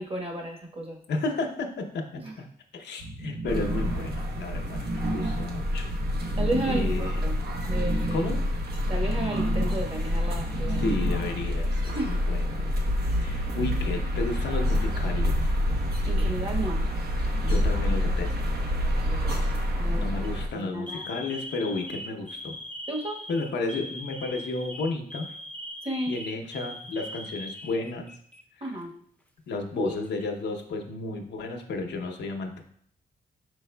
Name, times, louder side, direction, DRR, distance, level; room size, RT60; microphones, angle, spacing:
voice 1, 0.0-1.0 2.2-2.3 6.3-7.4 7.7-8.3 8.9-10.8 11.9-12.3 16.0-16.8 17.4-17.6 19.0-21.0 22.9-23.2 25.8-26.2 28.6-28.9 29.8-30.0, right 1 dB, 35° right, 0 dB, 1.2 m, -33 dB
voice 2, 1.1-2.2 2.7-6.0 6.6-7.2 8.1-8.4 10.7-12.7 13.2-15.5 17.5-18.4 19.9-22.6 23.3-25.4 26.1-28.1 28.6-28.7 29.5-32.6, left 3 dB, 80° left, 3 dB, 0.7 m, -32 dB
sound 1, 3.0-11.5, right 2 dB, 85° right, 1.3 m, -34 dB
sound 2, 3.5-20.5, left 1 dB, 65° right, 0.8 m, -27 dB
Alarm, 18.0-18.5 19.3-19.6 20.1-20.3 20.9-28.4 28.7-28.8 29.7-30.4, equal, 10° left, 0.5 m, -41 dB
4.6 x 4.6 x 2.2 m, 0.64 s
cardioid pair, 70°, 18 cm